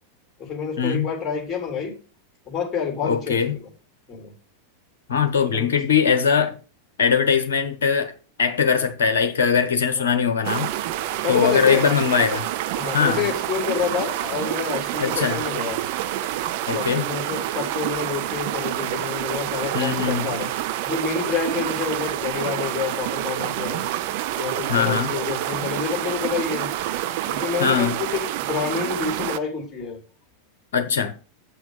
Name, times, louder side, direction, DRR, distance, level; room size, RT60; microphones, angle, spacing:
voice 1, 0.4-1.9 2.5-3.7 4.1-4.3 5.4-5.7 10.0-10.2 11.2-11.8 12.8-15.8 16.6-20.5 20.8-23.8 24.3-26.7 27.3-30.0, left 6 dB, 20° left, 3.9 m, -28 dB
voice 2, 3.0-3.6 5.1-6.6 7.0-8.1 8.4-10.7 11.3-12.5 12.9-13.2 15.0-15.4 16.7-17.1 19.7-20.3 24.7-25.1 27.6-28.0 30.7-31.1, left 6 dB, 60° left, 1.0 m, -21 dB
sound 1, 10.4-29.4, right 13 dB, 50° right, 0.5 m, -28 dB
7.9 x 6.1 x 5.0 m
figure-of-eight pair, 90°, 0 cm